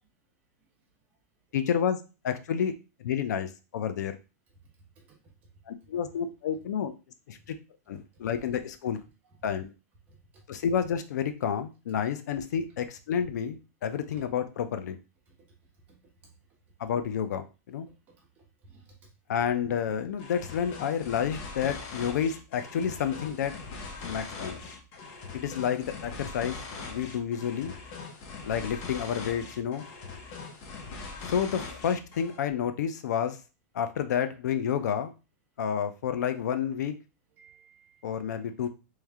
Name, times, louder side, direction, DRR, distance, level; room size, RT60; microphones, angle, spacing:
voice 1, 1.5-2.7 3.0-4.2 5.7-6.9 7.3-7.6 7.9-9.0 9.4-9.7 10.5-15.0 16.8-17.9 19.3-23.6 24.0-24.6 25.3-27.7 28.4-29.9 31.3-33.4 33.7-35.1 35.6-36.9 38.0-38.7, left 8 dB, 85° left, 10 dB, 0.6 m, -30 dB
voice 2, 10.1-10.4 15.3-15.4 15.9-16.0 16.2-16.3 18.1-19.0 37.4-38.1, right 3 dB, 15° right, -2 dB, 1.1 m, -58 dB
sound 1, 20.2-32.4, left 4 dB, 30° left, 0.7 m, -41 dB
3.2 x 3.2 x 3.5 m, 0.30 s
supercardioid pair, 175°, 9 cm